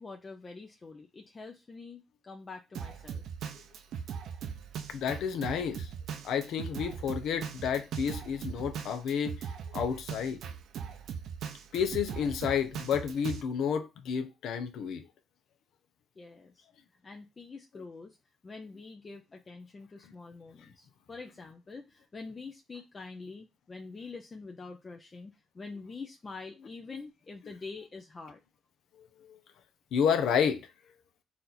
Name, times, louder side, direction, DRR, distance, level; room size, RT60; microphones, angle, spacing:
voice 1, 0.0-3.2 16.2-16.6 17.0-18.2 18.4-28.4, left 4 dB, 35° left, 0.5 m, -45 dB
Drum kit, 2.7-13.4, right 7 dB, 75° right, 0.6 m, -40 dB
voice 2, 4.9-5.9 6.2-9.4 9.7-10.4 11.7-15.0 29.9-30.7, left 7 dB, 80° left, 0.8 m, -30 dB
4.3 x 2.6 x 4.1 m
cardioid pair, 90°, 0 cm